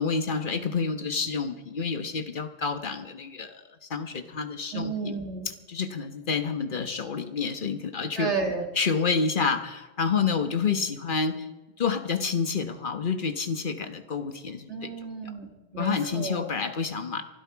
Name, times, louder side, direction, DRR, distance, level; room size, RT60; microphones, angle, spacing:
voice 1, 0.0-5.1 5.7-8.3 8.8-11.5 11.8-14.9 15.8-17.2, left 5 dB, 50° left, 8 dB, 1.4 m, -29 dB
voice 2, 4.7-5.5 8.2-8.7 14.7-16.5, right 4 dB, 80° right, 2 dB, 2.8 m, -32 dB
23.5 x 12.5 x 4.7 m, 1.1 s
omnidirectional pair, 1.2 m